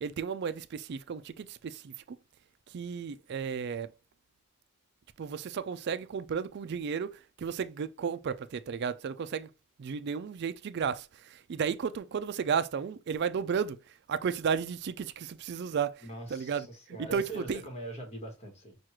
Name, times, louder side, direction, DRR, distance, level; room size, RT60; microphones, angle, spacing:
voice 1, 0.0-2.2 2.7-3.9 5.2-9.5 9.8-13.8 14.1-17.6, right 6 dB, 50° right, 0.3 m, -33 dB
voice 2, 16.0-18.8, right 1 dB, 30° left, 1.2 m, -42 dB
6.1 x 2.4 x 3.0 m
head